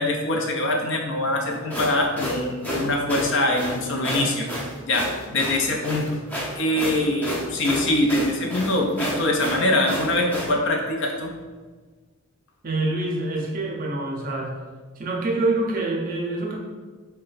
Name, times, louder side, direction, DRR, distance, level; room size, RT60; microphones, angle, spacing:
voice 1, 0.0-6.2 6.6-11.3, left 1 dB, 55° left, 1 dB, 0.6 m, -23 dB
sound 1, 1.5-10.5, equal, 10° left, 0.6 m, -30 dB
voice 2, 12.6-14.5 15.0-16.6, right 2 dB, 40° right, 0 dB, 0.6 m, -26 dB
4.2 x 2.2 x 3.9 m, 1.4 s
head